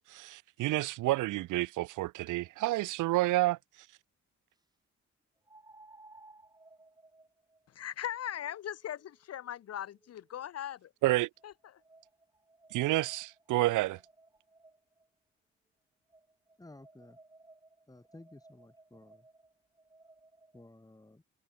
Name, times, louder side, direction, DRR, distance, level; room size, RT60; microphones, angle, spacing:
voice 1, 0.0-3.6 11.0-11.3 12.7-14.0, right 17 dB, 85° right, 0.7 m, -29 dB
sound 1, 5.4-10.6 11.4-15.1 16.1-20.7, right 2 dB, 15° right, 1.8 m, -60 dB
voice 2, 7.7-10.9 11.4-11.5, left 11 dB, 55° left, 0.8 m, -39 dB
voice 3, 16.6-17.2 17.9-19.3 20.5-21.2, left 2 dB, 10° left, 6.2 m, -54 dB
cardioid pair, 90°, 30 cm